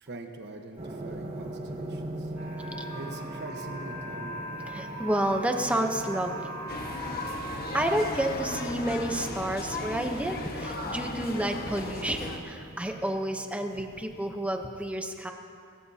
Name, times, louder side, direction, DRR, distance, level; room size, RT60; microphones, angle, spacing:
voice 1, 0.0-2.3 2.9-4.4, right 2 dB, 55° right, 4 dB, 1.2 m, -43 dB
sound 1, 0.8-14.7, right 1 dB, 35° right, 1.1 m, -42 dB
sound 2, 2.4-8.3, right 1 dB, 75° right, 2.5 m, -40 dB
voice 2, 4.7-6.5 7.5-15.3, right 1 dB, 5° right, 4 dB, 0.9 m, -30 dB
sound 3, 6.7-12.4, left 2 dB, 50° left, 1.3 m, -36 dB
21.5 x 15.0 x 2.8 m, 2.4 s
head